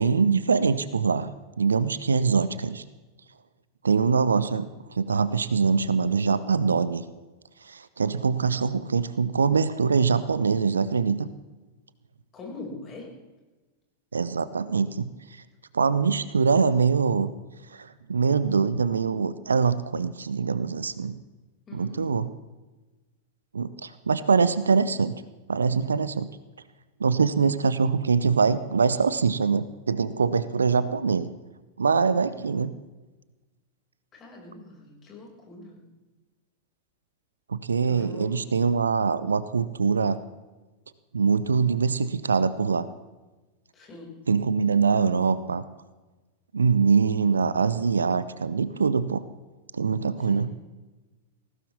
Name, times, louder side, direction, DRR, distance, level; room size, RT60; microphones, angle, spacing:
voice 1, 0.0-2.8 3.8-7.0 7.6-11.3 14.1-15.1 15.7-17.3 17.7-21.2 21.7-22.3 23.5-25.2 25.5-26.3 27.0-31.3 31.8-32.7 37.5-40.2 41.1-42.9 44.3-45.6 46.5-49.2 49.7-50.5, right 5 dB, 75° right, 15 dB, 0.7 m, -23 dB
voice 2, 12.3-13.1 21.7-22.1 34.1-35.8 37.8-38.5 43.7-44.2 50.3-50.5, left 2 dB, 25° left, -2 dB, 6.0 m, -42 dB
20.0 x 16.5 x 3.6 m, 1.2 s
figure-of-eight pair, 90°, 0 cm